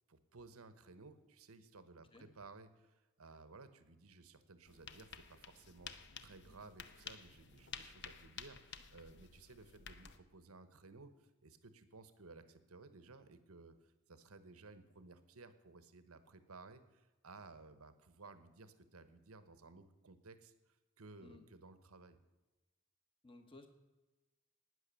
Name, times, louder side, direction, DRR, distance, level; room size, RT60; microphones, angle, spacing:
voice 1, 0.1-22.2, right 3 dB, 85° right, 12 dB, 1.1 m, -57 dB
sound 1, 4.7-10.2, left 7 dB, 55° left, 0.8 m, -53 dB
voice 2, 23.2-23.7, left 2 dB, 25° left, 6 dB, 1.2 m, -57 dB
11.5 x 9.6 x 7.0 m, 1.1 s
head